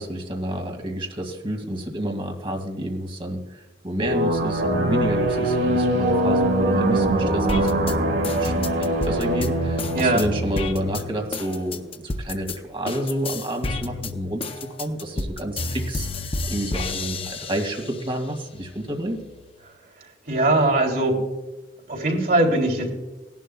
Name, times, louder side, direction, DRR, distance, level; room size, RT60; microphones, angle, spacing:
voice 1, 0.0-7.9 8.3-14.5 14.8-19.2, right 1 dB, 30° right, 3 dB, 2.2 m, -29 dB
sound 1, 4.0-11.4, right 1 dB, 85° right, 2.0 m, -23 dB
sound 2, 7.5-12.6 12.9-18.1 18.5-19.5, left 2 dB, 35° left, 0.7 m, -30 dB
voice 2, 20.3-21.2 21.9-22.9, right 2 dB, 60° right, 1 dB, 3.2 m, -20 dB
18.0 x 11.5 x 2.3 m, 1.1 s
head